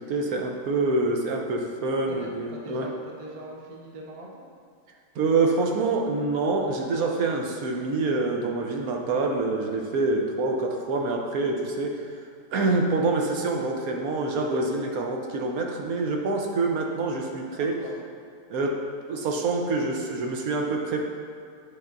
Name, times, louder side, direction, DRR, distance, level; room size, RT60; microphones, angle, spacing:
voice 1, 0.0-2.9 5.1-12.1 12.5-17.8 18.5-18.8 19.1-21.0, right 3 dB, 70° right, 1 dB, 1.1 m, -26 dB
voice 2, 2.1-4.4 17.6-18.0, right 1 dB, 45° right, -2 dB, 0.4 m, -42 dB
9.5 x 4.5 x 2.5 m, 2.3 s
omnidirectional pair, 1.7 m